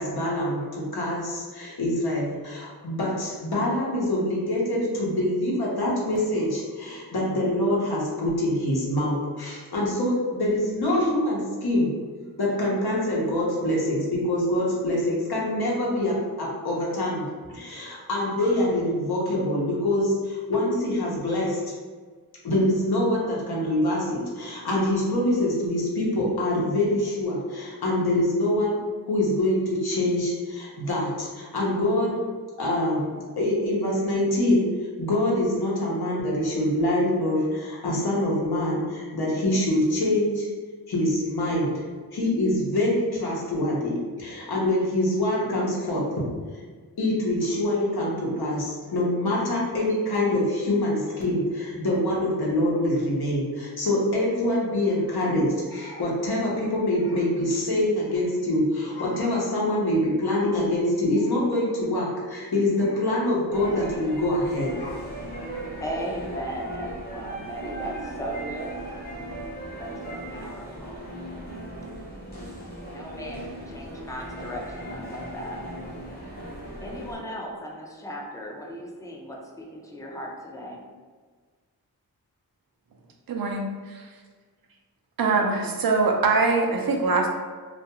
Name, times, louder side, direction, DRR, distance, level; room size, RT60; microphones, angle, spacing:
voice 1, 0.0-11.9 12.4-21.7 22.4-32.2 32.6-34.7 35.0-40.5 40.9-41.8 42.1-46.2 47.0-65.0, left 1 dB, 75° left, -4 dB, 0.8 m, -25 dB
sound 1, 63.5-77.2, right 1 dB, 25° left, 0.8 m, -37 dB
voice 2, 65.8-68.8 69.8-71.0 72.9-75.6 76.8-80.8 85.3-85.8, equal, 10° left, -1 dB, 0.4 m, -37 dB
voice 3, 83.3-84.1 85.2-87.3, right 3 dB, 65° right, 1 dB, 0.5 m, -23 dB
2.4 x 2.2 x 2.8 m, 1.5 s
wide cardioid pair, 65°, 38 cm